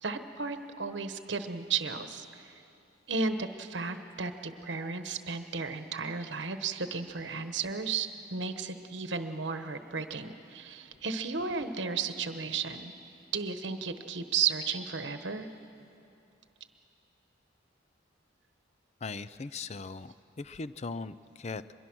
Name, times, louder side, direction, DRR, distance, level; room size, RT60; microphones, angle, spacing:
voice 1, 0.0-2.5 3.1-12.9 13.3-15.5, right 5 dB, 65° right, 8 dB, 1.1 m, -34 dB
voice 2, 19.0-21.7, left 4 dB, 35° left, 15 dB, 0.4 m, -39 dB
23.0 x 22.0 x 6.2 m, 2.8 s
head